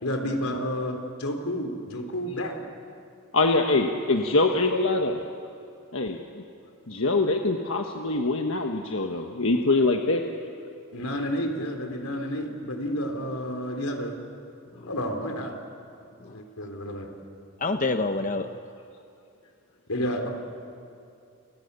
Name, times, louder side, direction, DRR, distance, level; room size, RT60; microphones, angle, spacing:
voice 1, 0.0-2.6 10.9-14.2 14.9-15.6 16.3-17.1 19.9-20.3, equal, 85° left, 4 dB, 3.7 m, -30 dB
voice 2, 3.3-5.2 5.9-6.4 6.9-10.2, left 2 dB, 60° left, 3 dB, 1.4 m, -24 dB
voice 3, 17.6-18.6, left 3 dB, 35° left, 7 dB, 0.9 m, -26 dB
29.5 x 28.5 x 6.9 m, 2.5 s
head